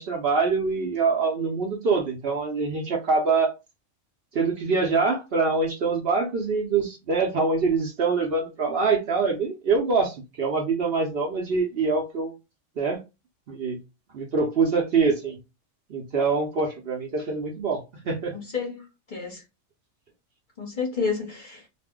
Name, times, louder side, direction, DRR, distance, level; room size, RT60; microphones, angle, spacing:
voice 1, 0.0-3.5 4.3-12.3 12.8-13.0 13.5-13.8 14.1-15.4 15.9-18.3, right 4 dB, 55° right, 0.8 m, -24 dB
voice 2, 18.3-19.4 20.6-21.7, left 5 dB, 45° left, 0.8 m, -31 dB
2.5 x 2.1 x 3.5 m
omnidirectional pair, 1.4 m